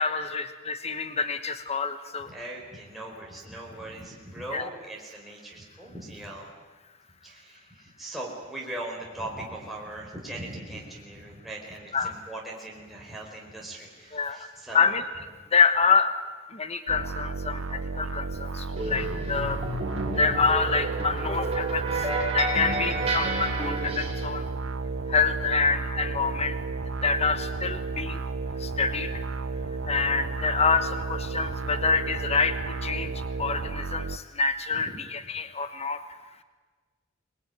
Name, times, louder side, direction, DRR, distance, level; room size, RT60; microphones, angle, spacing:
voice 1, 0.0-2.3 4.5-4.7 11.9-12.1 14.1-14.5 14.7-15.0 15.5-16.1 16.5-19.6 20.2-22.1 22.3-24.5 25.1-26.6 27.0-28.2 28.6-29.2 29.9-36.0, left 5 dB, 30° left, 10 dB, 1.1 m, -26 dB
voice 2, 2.3-6.5 7.2-14.9 34.7-34.8, right 1 dB, ahead, -3 dB, 4.4 m, -40 dB
sound 1, 16.9-34.2, right 4 dB, 90° right, 0.8 m, -33 dB
sound 2, 18.8-24.3, right 2 dB, 30° right, 6.0 m, -30 dB
26.0 x 21.0 x 9.4 m, 1.4 s
head